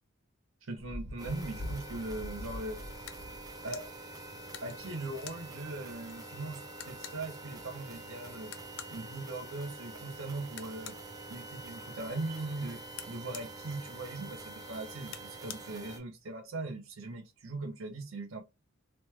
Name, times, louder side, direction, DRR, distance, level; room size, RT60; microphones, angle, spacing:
voice 1, 0.6-2.8 3.6-3.9 4.6-8.5 8.9-11.0 11.3-12.8 13.1-18.4, right 2 dB, 80° right, 0.8 m, -40 dB
Thunder, 0.8-4.7 6.0-6.1, left 1 dB, 50° right, 1.2 m, -44 dB
sound 1, 1.2-16.0, right 2 dB, 20° right, 0.5 m, -46 dB
sound 2, 3.1-3.2 3.6-3.9 4.5-5.4 6.1-6.2 6.4-6.5 6.8-7.2 8.4-9.0 10.5-11.0 12.9-13.5 15.1-15.6, left 10 dB, 60° left, 0.4 m, -46 dB
3.1 x 2.1 x 3.2 m
head